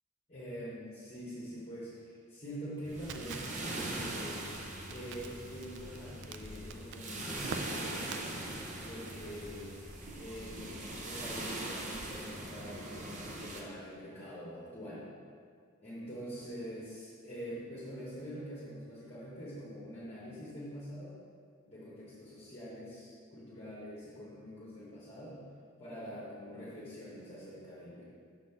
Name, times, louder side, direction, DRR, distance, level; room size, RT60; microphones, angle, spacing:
voice 1, 0.3-4.4 4.8-8.5 8.8-9.7 10.1-15.1 15.8-21.1 21.7-25.4 25.8-28.0, equal, 30° left, -9 dB, 1.2 m, -45 dB
sound 1, 2.8-13.6, right 2 dB, 35° right, 0.7 m, -41 dB
Crackle, 3.1-8.2, right 6 dB, 55° right, 0.3 m, -47 dB
6.2 x 4.2 x 5.6 m, 2.2 s
head